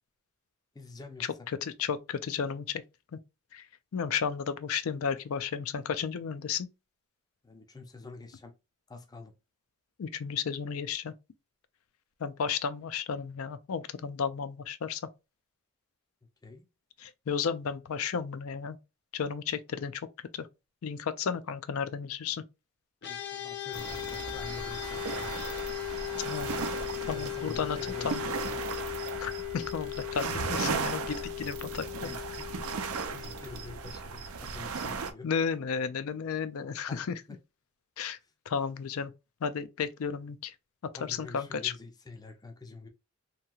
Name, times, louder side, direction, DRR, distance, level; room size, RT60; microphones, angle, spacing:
voice 1, 0.7-1.5 7.4-8.5 8.9-9.3 16.4-16.6 23.1-25.4 26.9-28.5 32.0-32.4 33.1-35.3 36.9-37.4 38.2-38.3 41.0-42.9, left 3 dB, 20° left, 0.5 m, -47 dB
voice 2, 1.6-2.8 3.1-3.2 3.5-3.6 3.9-6.7 10.0-11.1 12.2-15.0 17.0-18.8 19.1-20.1 20.3-20.5 20.8-22.4 26.2-26.5 27.1-27.8 28.0-28.2 29.2-32.1 35.2-37.1 38.0-38.2 38.5-39.1 39.4-40.5 41.0-41.7, left 6 dB, 75° left, 0.4 m, -33 dB
sound 1, 23.0-34.5, left 16 dB, 50° left, 0.7 m, -38 dB
sound 2, 23.7-35.1, right 5 dB, 80° right, 0.5 m, -36 dB
2.9 x 2.7 x 2.3 m
head